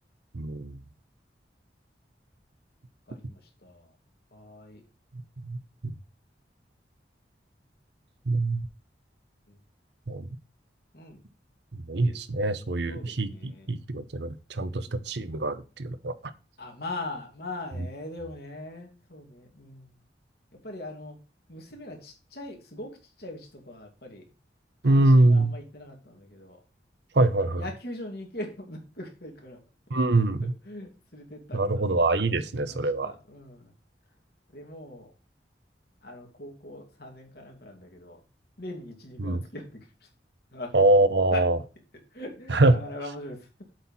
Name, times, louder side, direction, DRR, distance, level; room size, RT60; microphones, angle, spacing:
voice 1, 0.3-0.8 5.5-5.6 5.8-5.9 8.3-8.6 10.1-10.3 11.9-16.2 24.8-25.5 27.1-27.6 29.9-30.5 31.5-33.1 39.2-39.4 40.7-41.6 42.5-42.8, right 2 dB, 75° right, 12 dB, 0.8 m, -23 dB
voice 2, 3.1-3.9 4.3-4.8 9.5-9.6 10.9-11.2 12.0-12.2 12.9-13.7 14.6-15.0 16.6-20.0 20.6-21.2 21.5-24.2 24.9-26.6 27.4-29.6 30.6-31.8 32.5-33.7 34.5-35.1 36.0-38.2 38.6-39.7 40.5-40.7 41.3-41.4 42.1-43.5, left 2 dB, 60° left, 2 dB, 2.5 m, -41 dB
7.8 x 4.6 x 5.4 m, 0.32 s
head